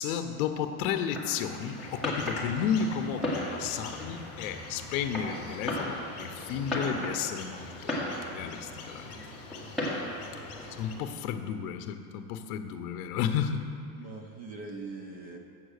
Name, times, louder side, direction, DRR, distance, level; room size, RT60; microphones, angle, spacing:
voice 1, 0.0-7.9 8.3-9.1 10.8-13.6, left 7 dB, 65° left, 7 dB, 0.7 m, -32 dB
Fireworks, 1.0-11.0, left 1 dB, ahead, 1.3 m, -37 dB
sound 1, 1.7-11.0, left 4 dB, 30° left, 1.1 m, -45 dB
voice 2, 10.3-10.9 13.9-15.4, right 3 dB, 20° right, 3 dB, 0.4 m, -43 dB
8.0 x 7.4 x 6.4 m, 2.4 s
supercardioid pair, 160°, 45 cm